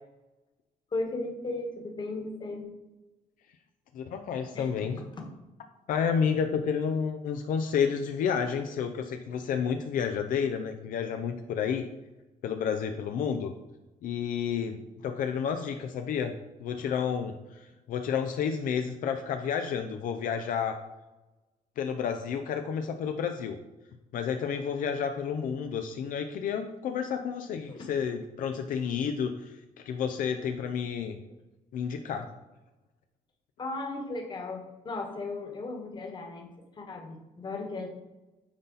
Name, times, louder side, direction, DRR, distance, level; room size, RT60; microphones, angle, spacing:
voice 1, 0.9-2.7 4.5-4.7 5.2-5.3 27.7-27.9 33.6-36.5 36.8-37.9, left 2 dB, 35° left, 2 dB, 1.4 m, -36 dB
voice 2, 3.9-5.0 5.9-11.8 12.4-13.5 14.0-16.3 16.6-20.8 21.8-23.6 24.1-31.2 31.7-32.3, left 7 dB, 70° left, 6 dB, 0.5 m, -30 dB
9.6 x 4.0 x 4.0 m, 1.1 s
cardioid pair, 120°, 14 cm